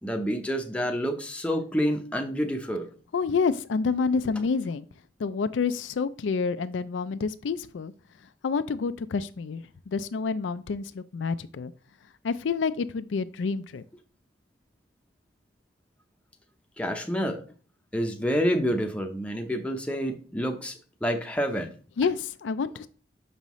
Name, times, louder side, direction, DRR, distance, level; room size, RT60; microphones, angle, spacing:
voice 1, 0.0-2.9 16.8-17.4 17.9-21.7, equal, 5° left, 3 dB, 0.6 m, -28 dB
voice 2, 3.1-4.9 5.2-7.9 8.4-11.7 12.2-13.8 22.0-22.9, left 5 dB, 80° left, 13 dB, 0.4 m, -28 dB
6.5 x 5.4 x 3.0 m, 0.40 s
head